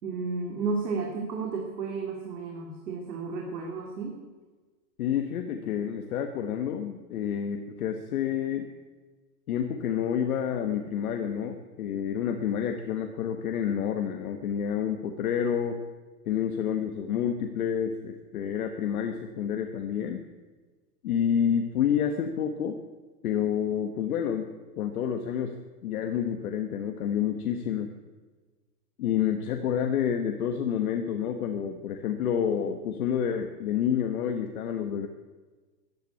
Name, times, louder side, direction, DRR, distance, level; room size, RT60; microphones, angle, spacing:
voice 1, 0.0-4.2, right 4 dB, 80° right, 1 dB, 2.9 m, -32 dB
voice 2, 5.0-8.7 9.5-15.8 16.3-20.2 21.0-22.8 23.2-24.5 24.8-25.5 25.8-27.9 29.0-35.1, left 8 dB, 60° left, 6 dB, 1.3 m, -29 dB
13.5 x 11.0 x 8.3 m, 1.3 s
supercardioid pair, 170°, 49 cm